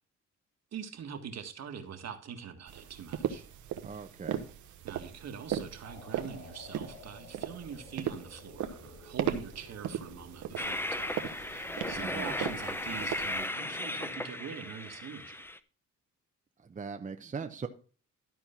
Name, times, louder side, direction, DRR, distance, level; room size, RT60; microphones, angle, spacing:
voice 1, 0.7-3.5 4.8-15.4, right 7 dB, 60° right, 1.6 m, -44 dB
sound 1, 2.7-13.5, right 10 dB, 75° right, 1.2 m, -38 dB
voice 2, 3.8-4.5 12.0-12.3 16.6-17.7, right 5 dB, 25° right, 0.8 m, -40 dB
sound 2, 5.8-14.2, left 3 dB, 30° left, 2.7 m, -53 dB
Train, 10.6-15.6, left 1 dB, 10° left, 0.6 m, -36 dB
12.5 x 4.4 x 5.6 m
cardioid pair, 90°, 30 cm